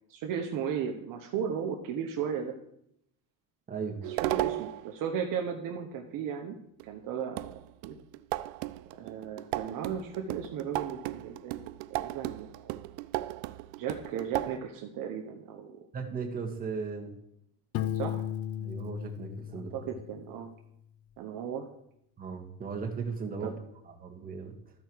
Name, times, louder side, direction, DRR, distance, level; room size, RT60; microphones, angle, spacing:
voice 1, 0.1-2.5 4.1-6.6 6.8-8.0 9.0-12.7 13.8-15.8 17.9-18.3 19.7-20.5 21.2-21.7 23.4-23.5, right 7 dB, 50° right, 3 dB, 1.0 m, -35 dB
voice 2, 3.7-4.0 15.9-17.1 18.6-19.9 22.2-23.6 23.9-24.5, right 5 dB, 20° right, 1 dB, 1.6 m, -37 dB
sound 1, 4.0-4.9 6.8-6.9 7.4-14.6, right 18 dB, 75° right, 0.5 m, -35 dB
Piano, 17.7-20.5, left 10 dB, 35° left, 0.5 m, -35 dB
13.5 x 4.7 x 4.6 m, 0.75 s
cardioid pair, 125°, 43 cm